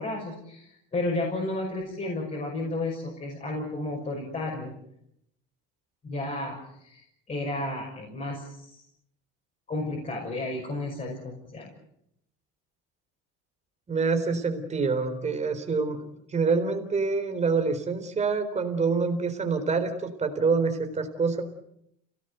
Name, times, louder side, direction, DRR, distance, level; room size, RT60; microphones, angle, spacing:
voice 1, 0.0-4.7 6.0-8.8 9.7-11.7, left 2 dB, 25° left, -2 dB, 6.2 m, -32 dB
voice 2, 13.9-21.4, right 4 dB, 20° right, 6 dB, 3.9 m, -26 dB
30.0 x 18.0 x 8.1 m, 0.77 s
cardioid pair, 150°, 31 cm